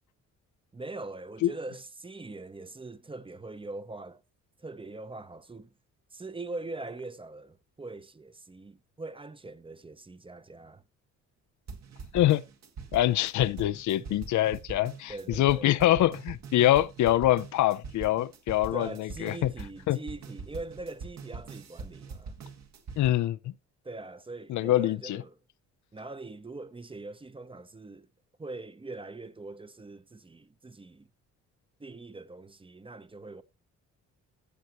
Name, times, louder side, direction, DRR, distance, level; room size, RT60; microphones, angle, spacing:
voice 1, 0.7-4.2 4.6-5.7 6.1-10.8 14.0-14.2 15.1-15.8 18.7-22.3 23.8-25.4 25.9-28.1 28.4-31.1 31.8-33.4, right 2 dB, 15° right, 0.8 m, -42 dB
sound 1, 11.7-23.1, right 4 dB, 65° right, 1.9 m, -43 dB
voice 2, 12.1-12.4 12.9-19.5 19.9-20.0 23.0-23.5 24.5-25.2, left 14 dB, 70° left, 0.6 m, -25 dB
15.0 x 6.6 x 3.0 m
cardioid pair, 90°, 30 cm